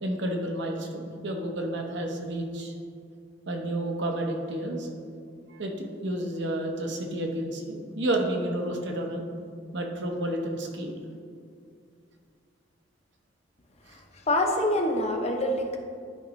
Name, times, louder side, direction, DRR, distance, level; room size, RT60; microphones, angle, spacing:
voice 1, 0.0-2.7 3.5-4.9 5.5-9.2 9.7-11.0, right 1 dB, 65° right, 2 dB, 1.0 m, -30 dB
voice 2, 14.3-15.8, left 1 dB, 35° left, 2 dB, 0.7 m, -25 dB
11.5 x 5.0 x 3.1 m, 2.2 s
head